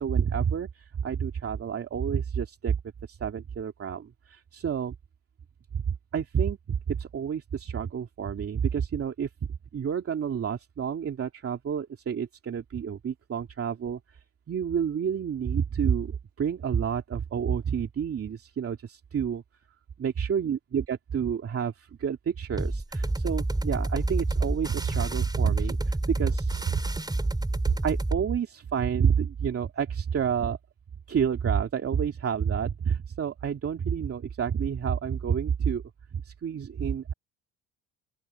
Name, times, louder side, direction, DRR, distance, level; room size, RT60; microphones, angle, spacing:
voice 1, 0.0-2.8 3.1-4.9 5.7-9.3 9.7-14.2 14.5-19.4 20.0-26.7 27.8-30.6 31.1-35.8 36.1-37.1, right 7 dB, 40° right, 2.6 m, -29 dB
sound 1, 22.6-28.2, right 2 dB, 10° right, 4.9 m, -29 dB
open air
supercardioid pair, 80°, 34 cm